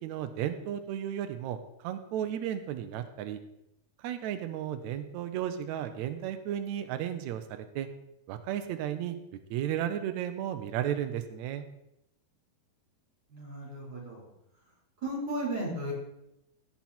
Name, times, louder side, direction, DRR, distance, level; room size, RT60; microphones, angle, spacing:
voice 1, 0.0-3.4 4.0-7.9 8.3-9.2 9.5-11.6, right 10 dB, 85° right, 8 dB, 1.6 m, -34 dB
voice 2, 13.3-14.3 15.0-15.9, right 1 dB, 30° right, -3 dB, 4.8 m, -35 dB
16.5 x 6.0 x 4.3 m, 0.83 s
omnidirectional pair, 4.1 m